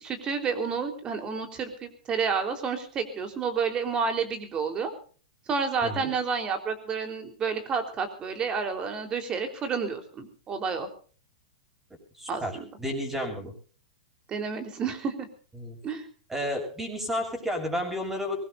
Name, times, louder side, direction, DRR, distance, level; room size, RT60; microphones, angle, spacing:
voice 1, 0.0-4.9 5.5-10.9 12.3-12.6 14.3-15.3 15.8-16.1, right 5 dB, 25° right, 7 dB, 3.8 m, -30 dB
voice 2, 12.2-13.5 15.6-15.8 16.3-18.4, equal, 10° right, 4 dB, 7.1 m, -31 dB
23.0 x 20.0 x 2.6 m, 0.43 s
figure-of-eight pair, 105°, 3 cm